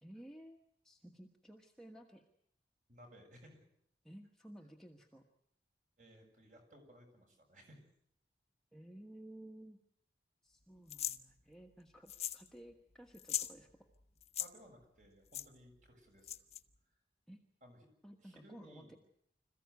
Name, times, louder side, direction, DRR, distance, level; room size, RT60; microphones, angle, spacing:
voice 1, 0.0-0.6 0.8-2.2 4.0-5.2 8.7-9.8 10.4-13.9 17.3-17.4 18.0-19.0, right 1 dB, 5° left, 1 dB, 1.3 m, -55 dB
voice 2, 2.9-3.6 6.0-7.9 14.4-16.3 17.6-17.9 18.2-19.0, equal, 45° right, 3 dB, 6.9 m, -59 dB
sound 1, 10.9-11.2 12.1-12.5 12.7-12.8 13.1-13.5 14.2-14.5 15.3-15.5 16.2-16.6, left 11 dB, 35° left, 0.9 m, -39 dB
26.5 x 15.0 x 9.5 m, 0.72 s
head